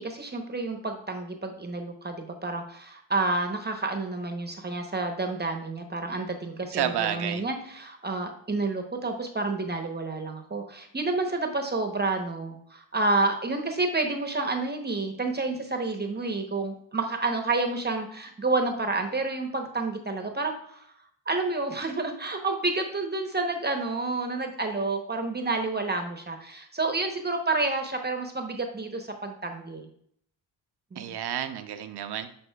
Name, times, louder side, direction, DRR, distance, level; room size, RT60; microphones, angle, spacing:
voice 1, 0.0-20.9 21.3-29.9 30.9-31.2, right 3 dB, 25° right, 5 dB, 0.8 m, -29 dB
voice 2, 6.7-7.4 31.0-32.3, right 10 dB, 60° right, 9 dB, 0.6 m, -30 dB
11.0 x 4.3 x 2.2 m, 0.67 s
cardioid pair, 75°, 44 cm